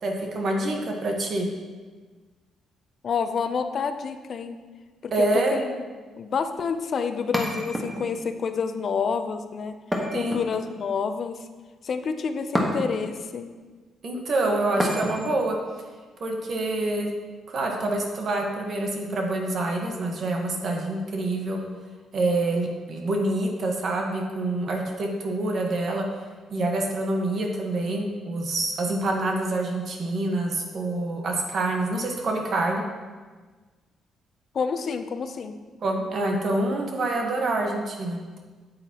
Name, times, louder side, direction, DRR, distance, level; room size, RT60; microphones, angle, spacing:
voice 1, 0.0-1.5 5.1-5.6 10.1-10.4 14.0-15.6 16.2-17.1 17.5-21.6 22.1-26.0 26.5-32.8 35.8-38.2, right 2 dB, 55° right, 1 dB, 1.2 m, -26 dB
voice 2, 3.0-4.6 5.0-5.8 6.2-9.7 10.1-11.5 11.8-13.5 34.5-35.6, left 6 dB, 55° left, 9 dB, 0.6 m, -28 dB
sound 1, 7.3-8.3 9.9-10.9 12.5-13.2 14.8-15.4, equal, 10° right, 1.4 m, -28 dB
8.7 x 7.9 x 2.9 m, 1.4 s
cardioid pair, 90°, 0 cm